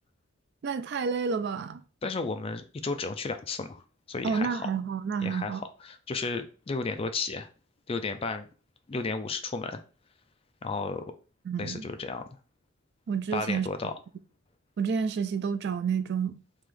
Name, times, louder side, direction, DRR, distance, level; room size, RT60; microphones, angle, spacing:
voice 1, 0.6-1.8 4.2-5.6 11.5-11.9 13.1-13.7 14.8-16.4, right 6 dB, 50° right, 0.3 m, -29 dB
voice 2, 2.0-4.7 5.2-7.5 7.9-8.5 8.9-9.8 10.6-11.1 11.6-12.2 13.3-13.9, left 4 dB, 25° left, 0.3 m, -33 dB
3.2 x 2.9 x 3.7 m
head